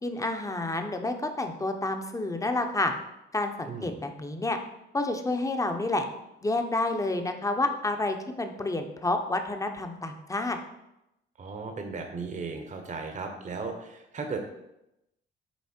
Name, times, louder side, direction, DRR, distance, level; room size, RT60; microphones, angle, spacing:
voice 1, 0.0-2.9 3.3-4.6 4.9-6.1 6.4-10.6, left 2 dB, 15° left, 5 dB, 0.8 m, -29 dB
voice 2, 11.4-14.4, right 4 dB, 40° right, 4 dB, 1.0 m, -36 dB
7.3 x 4.1 x 4.4 m, 0.88 s
cardioid pair, 90°, 20 cm